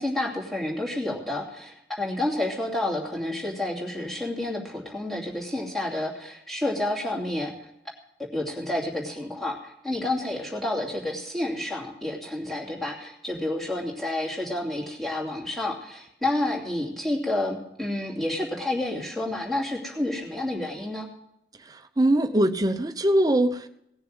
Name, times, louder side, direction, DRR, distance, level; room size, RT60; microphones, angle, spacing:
voice 1, 0.0-7.5 8.2-21.1, left 1 dB, ahead, -3 dB, 2.7 m, -30 dB
voice 2, 21.6-23.7, right 1 dB, 20° right, 8 dB, 0.8 m, -22 dB
18.0 x 6.9 x 7.9 m, 0.80 s
head